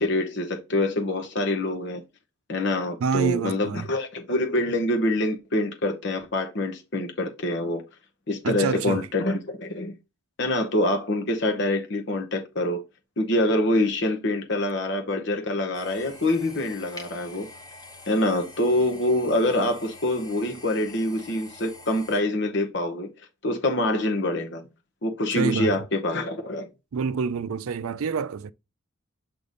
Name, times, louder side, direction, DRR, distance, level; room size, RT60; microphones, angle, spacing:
voice 1, 0.0-2.0 2.5-7.8 8.3-9.9 10.4-12.8 13.2-17.5 18.1-23.1 23.4-24.6 25.0-26.7, left 1 dB, 55° left, 0.9 m, -25 dB
voice 2, 3.0-3.9 8.4-9.0 25.3-25.7 26.9-28.5, right 5 dB, 80° right, 0.4 m, -27 dB
sound 1, 15.7-22.2, left 2 dB, 15° left, 0.9 m, -46 dB
7.7 x 2.7 x 5.0 m
head